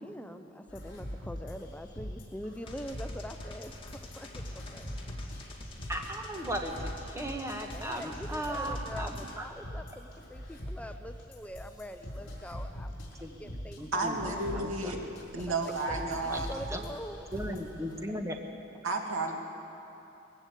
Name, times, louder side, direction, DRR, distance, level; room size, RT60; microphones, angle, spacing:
voice 1, 0.0-4.3 4.5-4.9 7.7-14.4 15.4-15.5 15.9-17.3, equal, 5° left, 7 dB, 0.5 m, -44 dB
sound 1, 0.7-18.1, equal, 60° left, 5.2 m, -43 dB
sound 2, 2.7-9.4, left 1 dB, 25° left, 1.8 m, -47 dB
voice 2, 5.9-9.5 13.2-13.3 13.8-15.1 16.3-16.4 16.7-16.9 17.3-18.4, right 1 dB, 15° right, 3 dB, 1.3 m, -37 dB
voice 3, 13.9-15.0 15.3-16.5 18.8-19.3, right 2 dB, 85° right, 1 dB, 2.5 m, -32 dB
20.5 x 15.5 x 8.3 m, 2.9 s
head